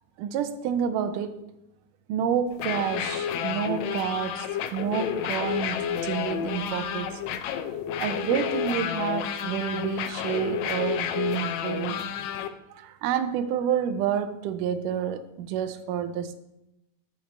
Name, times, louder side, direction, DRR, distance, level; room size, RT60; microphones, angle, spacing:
voice 1, 0.2-1.4 2.1-7.1 8.0-12.1 12.7-16.3, right 8 dB, 80° right, 10 dB, 2.1 m, -29 dB
sound 1, 2.5-12.5, left 9 dB, 85° left, 1.6 m, -30 dB
14.5 x 5.5 x 3.3 m, 0.88 s
omnidirectional pair, 3.9 m